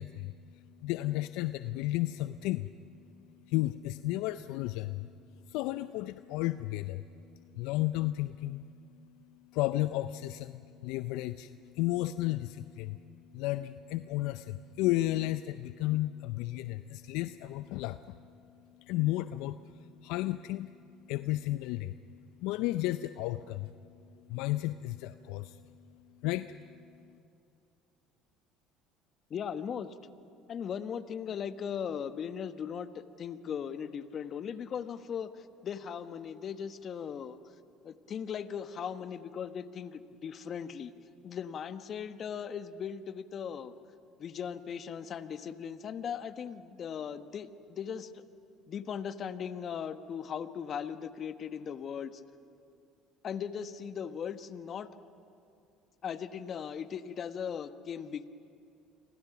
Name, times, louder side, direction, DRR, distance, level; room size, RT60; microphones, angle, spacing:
voice 1, 0.0-27.2, left 16 dB, 75° left, 13 dB, 0.5 m, -34 dB
voice 2, 29.3-29.9 30.5-37.4 37.8-40.9 41.2-43.7 44.2-48.2 48.7-52.2 53.2-54.9 56.0-58.3, left 7 dB, 50° left, 11 dB, 1.2 m, -38 dB
29.5 x 24.5 x 6.0 m, 2.6 s
hypercardioid pair, 70°, 0 cm